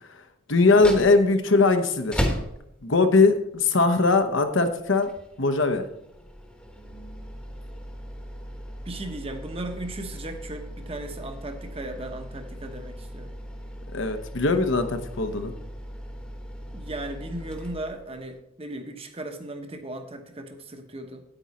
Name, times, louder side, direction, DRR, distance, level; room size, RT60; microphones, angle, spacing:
voice 1, 0.5-2.2 2.8-5.1 5.4-5.9 13.9-15.5, left 3 dB, 65° left, 8 dB, 0.9 m, -20 dB
sound 1, 0.6-18.4, equal, 5° left, 1.1 m, -37 dB
voice 2, 8.8-13.4 16.7-21.2, right 1 dB, 25° right, 6 dB, 1.0 m, -37 dB
9.1 x 9.0 x 4.2 m, 0.80 s
head